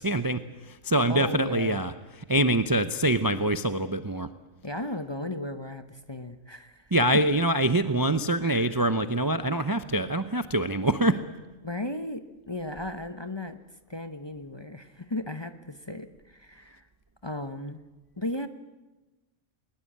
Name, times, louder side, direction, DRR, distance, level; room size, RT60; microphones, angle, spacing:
voice 1, 0.0-1.9 2.3-4.3 6.9-11.2, right 1 dB, 20° right, 11 dB, 0.6 m, -25 dB
voice 2, 1.1-1.8 4.6-6.9 8.4-8.8 11.6-13.6 13.9-16.9 17.2-17.8 18.2-18.5, left 1 dB, 20° left, 9 dB, 0.9 m, -35 dB
20.5 x 20.0 x 8.6 m, 1.2 s
omnidirectional pair, 1.4 m